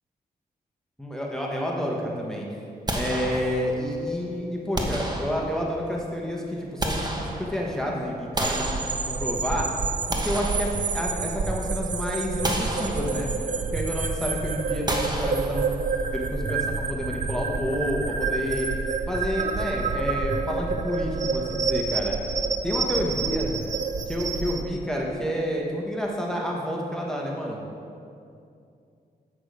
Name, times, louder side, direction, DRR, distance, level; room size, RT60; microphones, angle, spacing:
voice 1, 1.0-2.5 2.9-9.7 10.1-15.7 16.1-18.7 19.1-22.2 22.6-23.5 24.1-27.6, equal, 5° left, -2 dB, 1.2 m, -29 dB
sound 1, 2.9-3.9 4.7-5.8 6.5-7.8 8.3-9.5 9.9-11.4 11.7-11.9 12.4-13.5 14.9-16.0, right 1 dB, 25° right, 1.1 m, -31 dB
sound 2, 8.4-24.6, right 4 dB, 50° right, 0.6 m, -28 dB
8.2 x 6.1 x 4.8 m, 2.5 s
cardioid pair, 75°, 16 cm